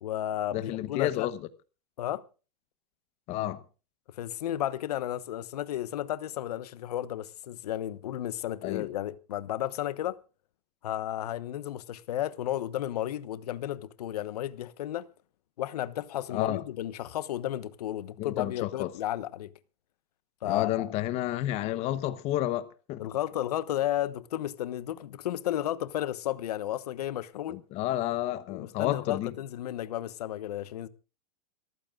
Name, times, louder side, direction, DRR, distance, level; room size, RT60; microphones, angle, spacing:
voice 1, 0.0-1.3 2.0-2.2 4.1-10.2 10.8-15.1 15.6-19.5 20.4-20.9 23.0-27.6 28.5-30.9, left 12 dB, 80° left, 1.1 m, -33 dB
voice 2, 0.5-1.4 3.3-3.6 8.6-8.9 16.3-16.6 18.2-18.9 20.4-23.1 27.5-29.3, left 14 dB, 35° left, 1.0 m, -31 dB
27.5 x 14.5 x 2.4 m
supercardioid pair, 155°, 20 cm